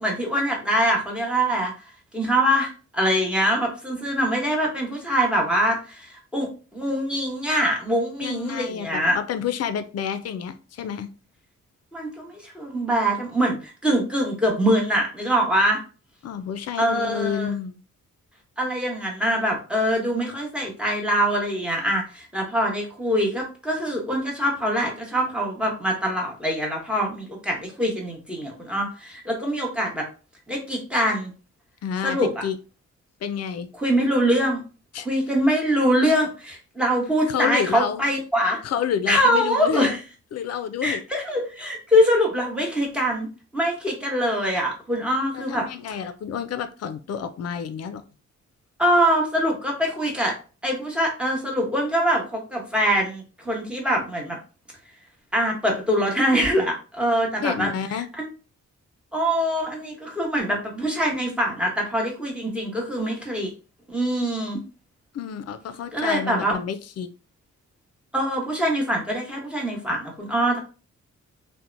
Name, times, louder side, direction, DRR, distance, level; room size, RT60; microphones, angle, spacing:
voice 1, 0.0-1.7 2.1-9.2 11.9-15.8 16.8-17.5 18.6-30.1 30.5-31.3 32.0-32.3 33.8-34.6 35.0-38.6 39.1-40.0 40.8-43.3 43.5-45.7 48.8-50.3 50.6-54.4 55.3-57.7 58.2-58.3 59.1-63.5 63.9-64.6 65.9-66.6 68.1-70.6, equal, 5° right, -1 dB, 1.1 m, -23 dB
voice 2, 8.2-11.1 16.2-17.8 31.8-32.6 33.2-33.7 34.9-35.1 37.3-38.0 38.6-40.0 40.3-41.0 45.3-48.0 57.4-58.1 65.1-67.1, left 8 dB, 55° left, 10 dB, 0.4 m, -29 dB
2.7 x 2.1 x 2.5 m, 0.35 s
cardioid pair, 75°, 30 cm